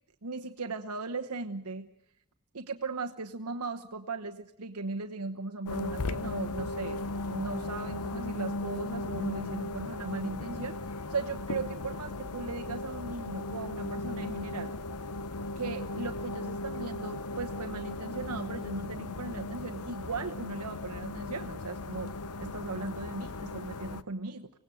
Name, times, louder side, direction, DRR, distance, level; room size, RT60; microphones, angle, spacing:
voice 1, 0.2-1.9 2.5-7.0 7.3-10.8 11.1-14.7 15.6-22.1 22.4-24.5, right 3 dB, 80° right, 5 dB, 1.1 m, -37 dB
sound 1, 5.7-24.0, left 2 dB, 80° left, 0.8 m, -37 dB
25.5 x 18.0 x 7.8 m, 0.82 s
head